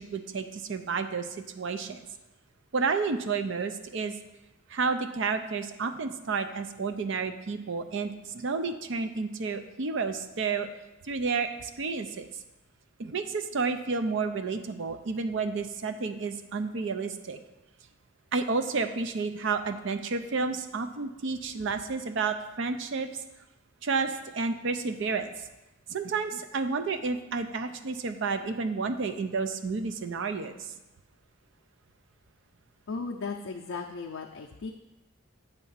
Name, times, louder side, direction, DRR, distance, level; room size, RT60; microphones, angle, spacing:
voice 1, 0.1-1.3 1.6-2.0 2.7-4.1 4.7-10.7 11.1-12.3 13.0-17.4 18.3-23.1 23.8-25.3 25.9-30.6, right 4 dB, 60° right, 9 dB, 0.5 m, -31 dB
voice 2, 32.9-34.7, left 4 dB, 75° left, 1 dB, 0.4 m, -36 dB
8.3 x 3.4 x 5.6 m, 0.98 s
head